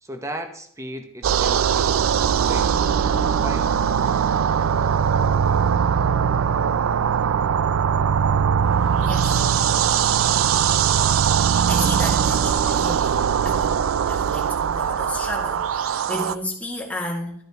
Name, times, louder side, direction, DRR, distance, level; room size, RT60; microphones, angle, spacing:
voice 1, 0.0-2.7 3.4-3.7, equal, 15° right, 6 dB, 0.9 m, -36 dB
sound 1, 1.2-16.4, right 7 dB, 75° right, 0.4 m, -20 dB
voice 2, 9.0-9.3 11.7-13.2 13.4-13.8 14.1-17.3, left 1 dB, 5° left, -1 dB, 1.8 m, -32 dB
12.5 x 8.7 x 3.0 m, 0.62 s
head